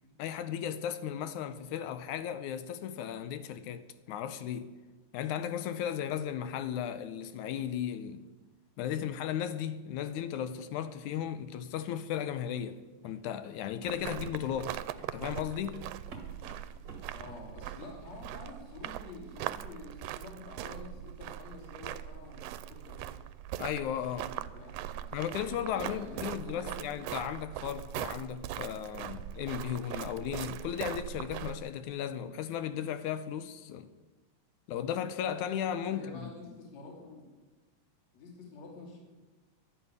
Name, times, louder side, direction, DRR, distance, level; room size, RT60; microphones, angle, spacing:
voice 1, 0.2-4.8 5.1-8.2 8.8-14.8 15.1-15.9 23.6-24.3 25.1-33.9 34.7-36.1, left 9 dB, 75° left, 2.0 m, -35 dB
sound 1, 12.5-18.2, right 3 dB, 40° right, 2.0 m, -51 dB
sound 2, 13.9-31.6, right 12 dB, 90° right, 2.3 m, -41 dB
voice 2, 17.1-23.2 24.1-25.1 25.6-26.9 35.9-37.2 38.1-39.0, left 3 dB, 55° left, 3.8 m, -48 dB
11.5 x 11.5 x 9.6 m
omnidirectional pair, 3.8 m